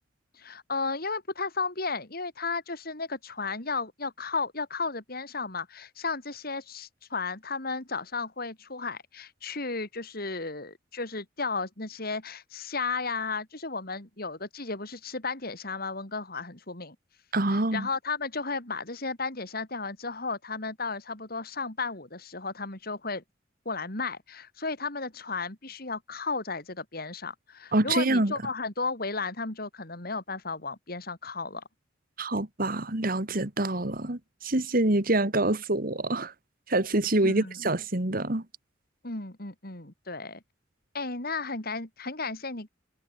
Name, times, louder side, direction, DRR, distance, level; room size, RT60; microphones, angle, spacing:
voice 1, 0.3-17.0 17.5-23.2 23.7-31.6 37.2-37.7 39.0-40.4 40.9-42.7, left 4 dB, 50° left, 3.6 m, -34 dB
voice 2, 17.3-17.9 27.7-28.3 32.2-36.3 36.7-38.4, right 2 dB, 50° right, 2.2 m, -26 dB
head